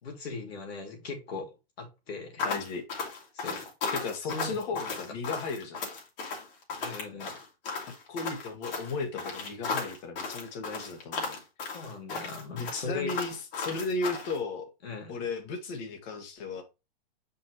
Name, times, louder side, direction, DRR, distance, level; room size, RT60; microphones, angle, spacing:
voice 1, 0.0-2.5 3.3-3.6 4.3-4.6 6.8-7.3 11.7-13.1 14.8-15.2, left 3 dB, 80° left, 3.0 m, -39 dB
sound 1, 2.4-14.4, left 4 dB, 60° left, 3.0 m, -35 dB
voice 2, 2.4-2.8 3.9-5.8 8.1-11.4 12.6-14.7 15.1-16.6, left 3 dB, 45° left, 2.0 m, -35 dB
6.2 x 5.5 x 3.1 m
hypercardioid pair, 135°, 30 cm